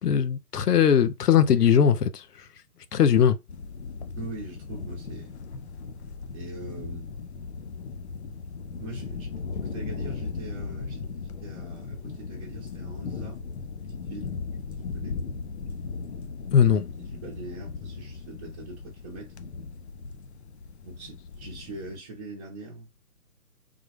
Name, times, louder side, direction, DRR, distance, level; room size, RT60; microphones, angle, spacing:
voice 1, 0.0-2.2 2.9-3.4 16.5-16.8, left 8 dB, 85° left, 0.8 m, -20 dB
sound 1, 3.5-22.0, left 4 dB, 50° left, 0.5 m, -37 dB
voice 2, 4.2-5.3 6.3-7.1 8.7-13.4 13.7-14.3 14.9-15.2 17.0-19.3 20.6-22.9, right 2 dB, 25° right, 1.0 m, -42 dB
3.7 x 2.4 x 3.2 m
hypercardioid pair, 150°, 46 cm